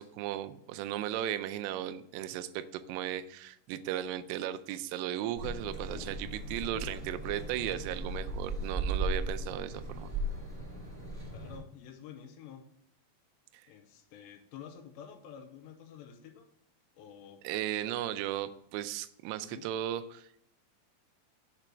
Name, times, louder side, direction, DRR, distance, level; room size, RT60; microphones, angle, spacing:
voice 1, 0.0-10.1 17.4-20.3, right 11 dB, 80° right, 9 dB, 2.5 m, -36 dB
sound 1, 5.3-11.6, right 2 dB, 25° right, 1.4 m, -37 dB
voice 2, 11.3-12.7 13.7-16.5 17.0-17.4 19.4-19.7, left 8 dB, 85° left, 5 dB, 2.9 m, -49 dB
6.9 x 4.4 x 5.9 m, 0.74 s
omnidirectional pair, 5.1 m